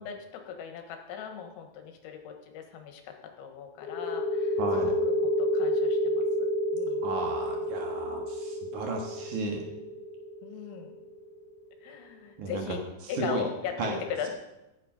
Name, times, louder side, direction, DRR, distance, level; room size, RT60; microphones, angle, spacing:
voice 1, 0.0-7.1 10.4-11.0 11.8-14.3, left 8 dB, 85° left, 5 dB, 4.0 m, -39 dB
sound 1, 3.8-11.2, left 1 dB, 60° left, 2.3 m, -29 dB
voice 2, 4.6-4.9 7.0-9.6 12.4-12.6 13.0-13.5 13.8-14.0, right 3 dB, 80° right, 1 dB, 1.7 m, -34 dB
16.5 x 7.7 x 5.2 m, 0.96 s
omnidirectional pair, 5.9 m